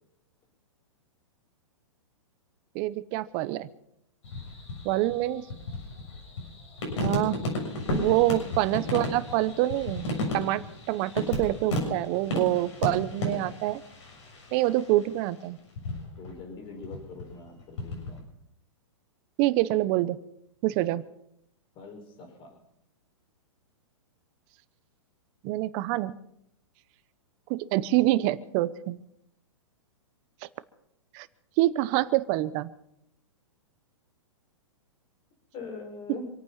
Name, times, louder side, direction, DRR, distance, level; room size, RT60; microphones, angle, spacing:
voice 1, 2.7-3.7 4.8-5.4 6.9-7.4 7.9-10.1 10.3-10.6 10.9-13.8 14.5-15.6 19.4-20.2 20.6-21.0 25.4-26.1 27.5-29.0 31.1-31.3 31.6-32.7, right 16 dB, 40° right, 16 dB, 1.0 m, -26 dB
sound 1, 4.2-15.1 15.8-16.4 16.7-18.2, left 1 dB, 65° left, 7.0 m, -34 dB
voice 2, 8.0-8.5 16.2-18.3 21.8-22.6 35.5-36.3, left 3 dB, 30° left, 3 dB, 5.8 m, -42 dB
27.0 x 9.0 x 5.8 m, 0.77 s
hypercardioid pair, 125°, 16 cm